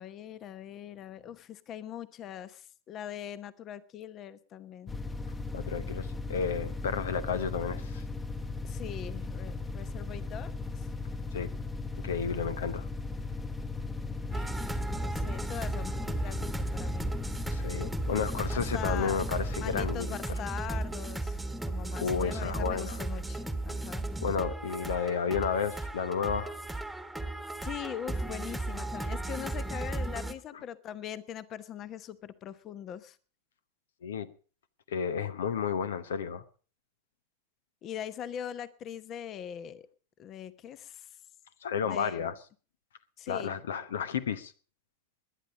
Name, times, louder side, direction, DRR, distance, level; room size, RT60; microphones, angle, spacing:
voice 1, 0.0-4.9 8.6-10.9 14.3-17.1 18.5-19.2 19.6-24.0 27.6-33.2 37.8-39.8 40.2-41.1 41.8-42.3 43.2-43.6, left 9 dB, 35° left, 1.0 m, -42 dB
sound 1, 4.9-20.0, left 3 dB, 15° left, 1.3 m, -37 dB
voice 2, 5.5-8.0 11.3-11.5 12.0-12.9 17.5-20.2 22.0-23.0 24.2-26.6 34.0-34.3 34.9-36.4 41.6-42.4 43.3-44.5, left 6 dB, 70° left, 0.9 m, -32 dB
sound 2, 14.3-30.3, right 2 dB, 5° right, 1.4 m, -35 dB
20.5 x 10.0 x 5.1 m
figure-of-eight pair, 90°, 0 cm